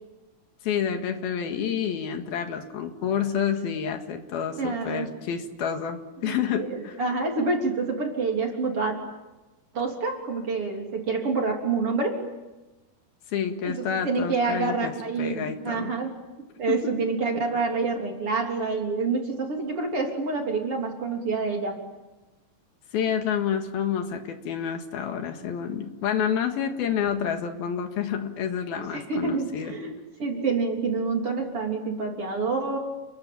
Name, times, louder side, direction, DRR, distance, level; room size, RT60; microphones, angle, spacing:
voice 1, 0.6-7.0 13.3-15.9 16.7-16.8 22.9-29.8, left 8 dB, 75° left, 6 dB, 3.7 m, -29 dB
voice 2, 4.6-5.1 6.2-9.0 9.7-12.2 13.6-16.1 16.4-21.8 28.7-29.9 30.2-32.8, right 4 dB, 35° right, 1 dB, 4.1 m, -27 dB
30.0 x 22.0 x 8.9 m, 1.1 s
omnidirectional pair, 4.4 m